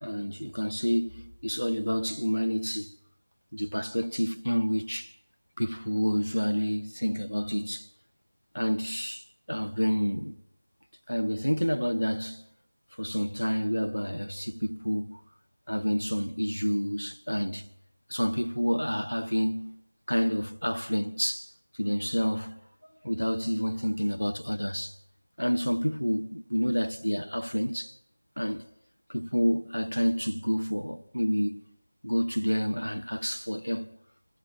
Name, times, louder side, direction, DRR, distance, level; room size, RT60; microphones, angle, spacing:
voice 1, 0.0-2.9 3.5-5.1 5.6-7.9 8.5-10.4 11.1-12.4 13.0-15.2 15.7-17.7 18.1-19.8 20.1-21.5 21.8-22.6 23.0-25.0 25.4-28.0 28.4-28.7 29.1-31.6 32.0-34.0, equal, 90° left, 1.6 m, -29 dB
27.0 x 26.0 x 6.0 m
figure-of-eight pair, 165°, 0 cm